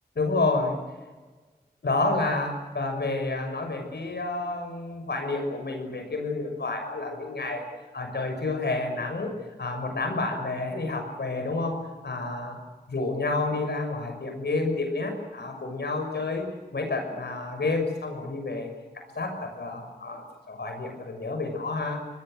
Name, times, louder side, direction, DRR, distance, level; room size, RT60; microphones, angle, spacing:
voice 1, 0.2-0.8 1.8-7.6 7.9-11.8 12.0-12.6 12.9-18.7 19.1-22.0, left 3 dB, 90° left, 4 dB, 6.4 m, -29 dB
28.0 x 20.5 x 7.8 m, 1.3 s
wide cardioid pair, 50°, 17 cm